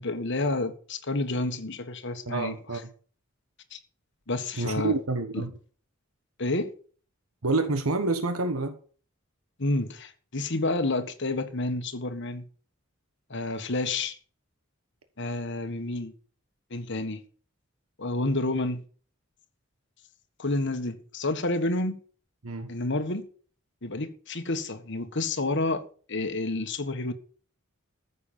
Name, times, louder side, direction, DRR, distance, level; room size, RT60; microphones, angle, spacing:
voice 1, 0.0-2.6 3.7-3.8 4.3-5.0 5.3-5.4 6.4-6.7 9.6-12.4 13.3-14.2 15.2-16.1 16.7-17.2 18.0-18.8 20.4-22.0 22.7-23.3 23.8-27.1, left 2 dB, 60° left, 1.6 m, -29 dB
voice 2, 2.3-2.9 4.5-5.5 7.4-8.8 22.4-22.7, right 3 dB, 90° right, 1.4 m, -28 dB
14.0 x 7.2 x 7.1 m
head